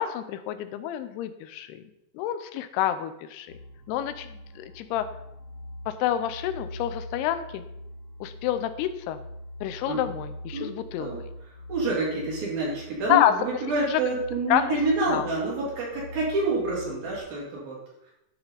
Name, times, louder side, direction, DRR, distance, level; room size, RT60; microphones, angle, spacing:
voice 1, 0.0-1.8 2.1-3.5 3.9-5.1 5.9-7.6 8.2-9.2 9.6-11.1 13.1-13.5 13.9-14.0 14.5-14.8 15.1-15.3, left 11 dB, 85° left, 10 dB, 2.6 m, -28 dB
sound 1, 3.5-17.2, left 1 dB, 50° right, 2.0 m, -43 dB
voice 2, 11.7-17.8, right 2 dB, 65° right, -5 dB, 4.1 m, -28 dB
11.5 x 4.4 x 4.0 m, 0.84 s
omnidirectional pair, 4.6 m